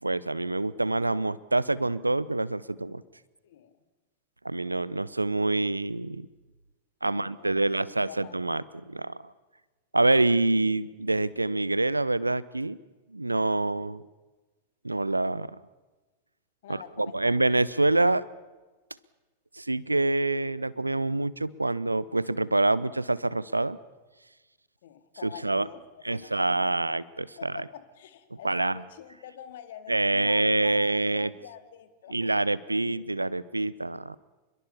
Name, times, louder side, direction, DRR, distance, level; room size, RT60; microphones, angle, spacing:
voice 1, 0.0-3.0 4.4-6.3 7.0-9.3 9.9-12.8 13.1-14.0 14.8-15.5 16.7-18.2 19.6-23.8 25.2-25.7 26.0-27.5 28.4-28.8 29.9-31.3 32.1-34.2, right 2 dB, 85° right, 20 dB, 0.7 m, -26 dB
voice 2, 7.0-8.3 16.6-17.4 24.8-25.8 26.1-27.0 27.4-32.5, left 9 dB, 55° left, 11 dB, 2.2 m, -46 dB
27.5 x 22.0 x 7.0 m, 1.2 s
figure-of-eight pair, 90°, 0 cm